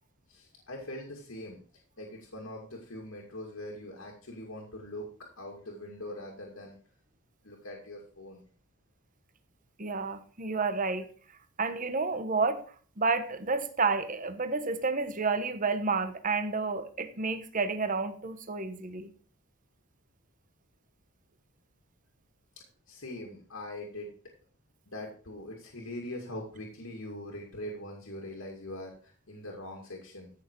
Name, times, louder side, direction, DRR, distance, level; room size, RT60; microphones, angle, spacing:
voice 1, 0.3-1.6 2.0-5.1 5.4-6.8 7.4-8.4 22.6-24.1 24.9-30.3, left 1 dB, 75° left, 2.3 m, -42 dB
voice 2, 9.8-11.1 11.6-12.6 13.0-19.1, right 4 dB, 40° right, 1.1 m, -30 dB
15.0 x 6.6 x 4.6 m
head